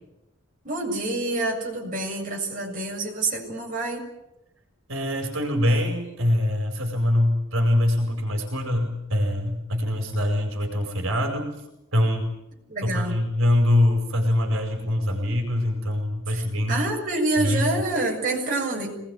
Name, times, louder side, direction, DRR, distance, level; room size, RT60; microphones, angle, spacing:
voice 1, 0.6-4.0 12.7-13.2 16.3-19.0, right 2 dB, 40° right, -1 dB, 7.4 m, -27 dB
voice 2, 4.9-11.5 11.9-12.3 12.8-16.8 17.4-17.7, left 1 dB, 75° right, 3 dB, 5.2 m, -23 dB
26.0 x 20.0 x 9.5 m, 0.87 s
head